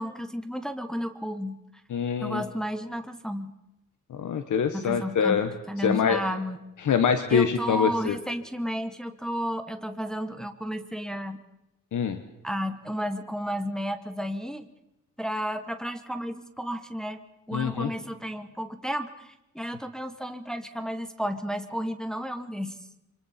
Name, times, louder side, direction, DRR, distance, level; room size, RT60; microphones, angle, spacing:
voice 1, 0.0-1.6 2.2-3.5 4.7-6.6 7.3-11.4 12.4-14.7 15.2-17.2 17.5-22.8, equal, ahead, 8 dB, 1.1 m, -32 dB
voice 2, 1.9-2.4 4.1-5.5 5.8-6.2 6.8-8.2 11.9-12.2 17.5-17.9, left 7 dB, 75° left, 9 dB, 1.1 m, -24 dB
26.5 x 24.5 x 4.3 m, 0.96 s
wide cardioid pair, 110°, 30 cm